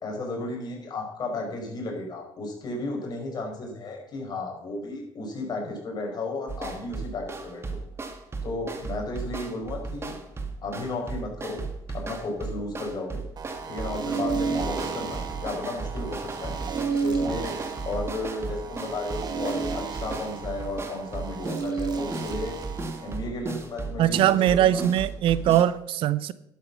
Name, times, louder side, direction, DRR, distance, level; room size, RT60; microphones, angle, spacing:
voice 1, 0.0-7.8 8.4-10.2 10.6-13.2 13.7-16.6 17.0-17.5 17.8-22.6 23.0-24.8, left 2 dB, 45° left, 0 dB, 5.1 m, -34 dB
sound 1, 6.5-25.6, right 3 dB, 25° right, 1.8 m, -36 dB
sound 2, 13.4-23.2, right 5 dB, 45° right, 1.9 m, -32 dB
voice 2, 24.0-26.3, right 12 dB, 70° right, 17 dB, 0.6 m, -21 dB
11.0 x 8.4 x 6.1 m, 0.78 s
supercardioid pair, 80°, 9 cm